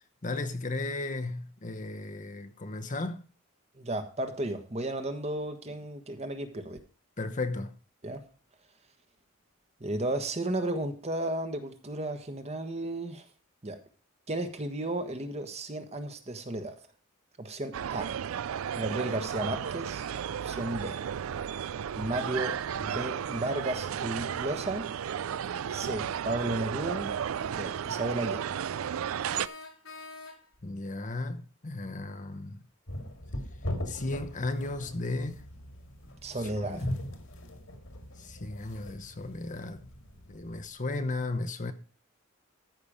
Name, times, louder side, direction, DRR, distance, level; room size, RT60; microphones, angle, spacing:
voice 1, 0.2-3.2 7.2-7.7 30.6-32.6 33.9-35.4 36.5-36.9 38.2-39.9 40.3-41.7, left 2 dB, 35° left, 0.9 m, -35 dB
voice 2, 3.8-6.8 8.0-8.2 9.8-13.2 13.6-13.8 14.3-16.8 17.4-18.1 18.8-20.0 20.4-21.0 21.9-24.9 25.7-27.1 27.5-28.6 36.2-36.8, right 1 dB, 30° right, 1.3 m, -34 dB
sound 1, 17.7-29.5, right 8 dB, 75° right, 0.4 m, -34 dB
sound 2, 29.3-30.7, left 3 dB, 85° left, 2.4 m, -46 dB
sound 3, 32.9-40.7, left 1 dB, 65° left, 2.2 m, -40 dB
14.0 x 5.8 x 5.0 m
head